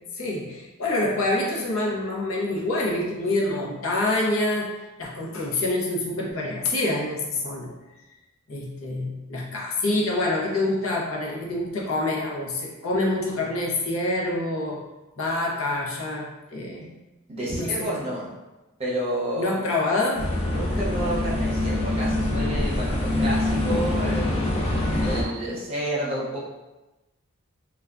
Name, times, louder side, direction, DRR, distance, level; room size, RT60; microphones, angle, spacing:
voice 1, 0.1-4.7 5.0-7.7 8.5-14.8 15.2-16.9 17.5-17.7 19.4-20.3, left 2 dB, 70° left, -3 dB, 0.6 m, -26 dB
voice 2, 17.3-18.3 18.8-19.7 20.4-24.5 25.0-26.4, right 1 dB, 30° right, -6 dB, 0.7 m, -30 dB
sound 1, 20.2-25.2, left 1 dB, 30° left, 0.4 m, -24 dB
3.2 x 2.3 x 2.4 m, 1.0 s
head